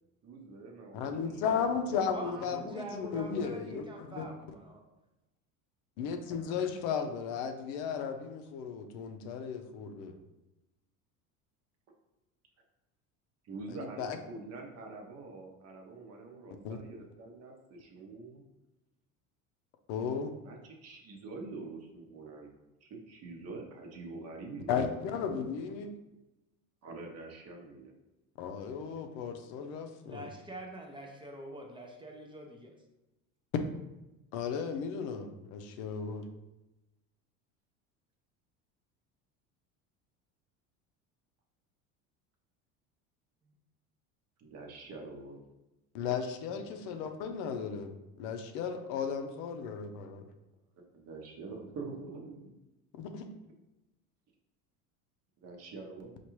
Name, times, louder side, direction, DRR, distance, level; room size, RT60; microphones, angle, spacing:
voice 1, 0.2-1.4 2.3-2.7 13.4-16.5 16.8-17.5 17.8-18.4 20.4-22.5 22.8-24.8 26.8-27.9 44.4-45.4 50.8-52.5 55.4-56.1, right 3 dB, 45° right, 1 dB, 0.8 m, -45 dB
voice 2, 0.9-4.3 6.0-10.1 14.0-14.2 16.7-16.8 19.9-20.3 24.7-26.0 28.4-30.3 34.3-36.3 45.9-50.2 53.0-53.3, left 6 dB, 70° left, 6 dB, 0.6 m, -35 dB
voice 3, 2.1-4.8 6.4-6.5 30.0-32.7, right 1 dB, 15° right, 2 dB, 0.4 m, -45 dB
4.5 x 2.4 x 3.0 m, 0.99 s
supercardioid pair, 115°, 37 cm